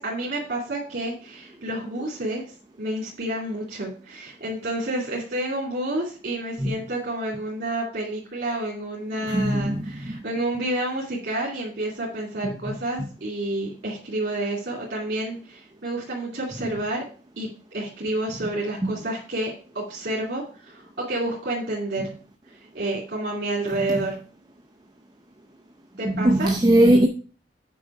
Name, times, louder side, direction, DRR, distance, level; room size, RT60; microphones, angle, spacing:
voice 1, 0.0-2.4 2.8-17.0 17.4-22.0 22.7-24.1 26.0-26.5, right 1 dB, 60° right, 2.4 m, -29 dB
voice 2, 9.3-10.2 18.8-18.9 26.1-27.1, right 1 dB, 20° right, 0.6 m, -19 dB
8.6 x 5.2 x 4.7 m
head